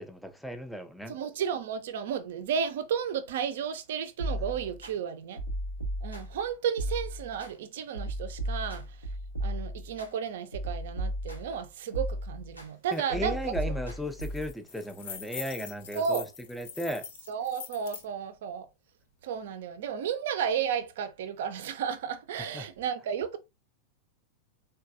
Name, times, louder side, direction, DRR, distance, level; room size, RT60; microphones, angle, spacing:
voice 1, 0.0-1.2 12.9-16.2 16.5-17.0 22.5-22.7, equal, ahead, 0.4 m, -35 dB
voice 2, 1.1-5.4 6.0-9.1 9.4-13.8 15.9-16.3 17.3-18.7 19.2-23.4, right 7 dB, 55° right, 0.4 m, -33 dB
sound 1, 4.2-4.9 5.4-6.4 6.8-7.5 7.9-10.1 10.5-11.6 11.9-12.7 13.1-14.5, right 1 dB, 90° left, 0.8 m, -35 dB
sound 2, 12.9-13.0 13.3-13.6 13.9-18.1, left 6 dB, 55° left, 0.6 m, -43 dB
3.8 x 2.2 x 2.5 m
figure-of-eight pair, 90°, 0 cm